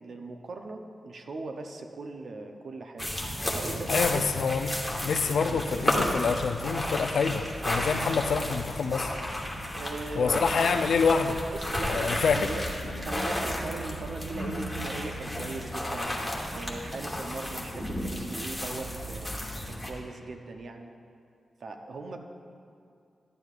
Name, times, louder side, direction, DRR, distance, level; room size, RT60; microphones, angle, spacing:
voice 1, 0.0-4.2 5.5-5.6 9.7-10.5 11.5-16.1 16.5-19.4 19.6-20.9 21.6-22.2, right 3 dB, 60° right, 4 dB, 0.7 m, -39 dB
sound 1, 3.0-19.9, left 1 dB, ahead, 1.1 m, -32 dB
voice 2, 3.9-4.7 5.0-9.1 10.2-11.3 11.9-12.5, left 5 dB, 80° left, 7 dB, 0.4 m, -26 dB
12.0 x 9.5 x 2.4 m, 2.4 s
wide cardioid pair, 140°, 0 cm